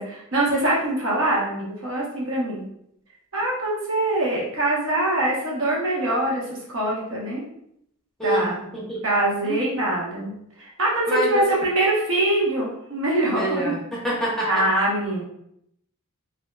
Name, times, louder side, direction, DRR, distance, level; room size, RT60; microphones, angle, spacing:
voice 1, 0.0-2.6 3.3-7.4 8.2-8.6 9.0-10.3 10.6-13.7 14.5-15.2, right 1 dB, 65° right, -4 dB, 1.0 m, -23 dB
voice 2, 8.2-9.0 9.4-9.6 11.1-11.4 13.3-14.6, right 1 dB, ahead, -6 dB, 0.8 m, -26 dB
3.6 x 2.6 x 2.2 m, 0.74 s
head